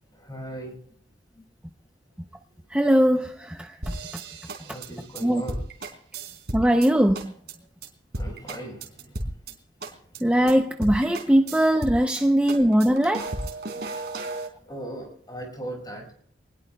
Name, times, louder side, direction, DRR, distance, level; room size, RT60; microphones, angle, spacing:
voice 1, 0.1-0.8 1.3-1.4 2.4-2.6 3.7-3.8 4.6-5.7 8.1-9.6 9.9-10.4 12.2-12.3 13.9-14.0 14.6-16.1, right 1 dB, 20° left, 2 dB, 5.8 m, -39 dB
voice 2, 2.7-3.7 5.2-5.4 6.5-7.3 10.2-13.3, equal, 5° right, 4 dB, 0.6 m, -20 dB
sound 1, 3.8-6.9 7.1-7.5 7.8-7.9 8.1-9.5 9.8-10.2 10.5-10.6 10.8-12.2 12.5-14.5, right 2 dB, 60° right, 3.5 m, -34 dB
24.5 x 20.0 x 2.3 m, 0.65 s
head